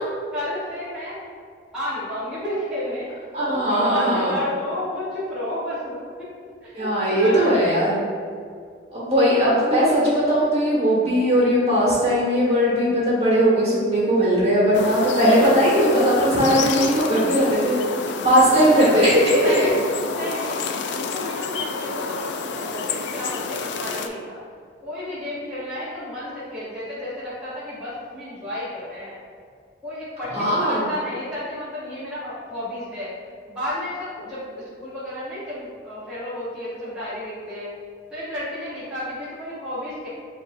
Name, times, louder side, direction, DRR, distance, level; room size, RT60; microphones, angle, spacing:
voice 1, 0.3-1.2 1.7-3.1 3.5-6.3 6.6-7.9 16.6-17.4 18.9-24.4 24.8-29.2 29.8-33.1 33.5-37.7 38.1-40.1, left 1 dB, 5° right, -12 dB, 0.8 m, -32 dB
voice 2, 3.3-4.3 6.7-8.0 8.9-17.8 18.2-19.7 30.3-30.8, equal, 35° right, -7 dB, 1.2 m, -19 dB
sound 1, 14.7-24.1, left 4 dB, 65° left, 0.3 m, -29 dB
7.2 x 2.6 x 2.4 m, 2.1 s
head